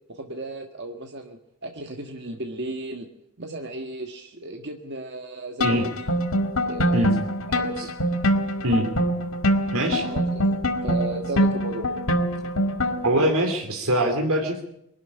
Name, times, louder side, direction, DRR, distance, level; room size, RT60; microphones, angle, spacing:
voice 1, 0.1-3.1 3.4-6.1 6.7-7.1 7.5-7.8 10.0-10.6 10.8-11.9, right 2 dB, 50° right, 4 dB, 1.6 m, -34 dB
sound 1, 5.6-13.3, equal, 65° left, 2.0 m, -24 dB
voice 2, 9.7-10.0 13.0-14.6, right 1 dB, 70° right, 2 dB, 2.9 m, -22 dB
23.5 x 12.5 x 9.8 m, 0.79 s
head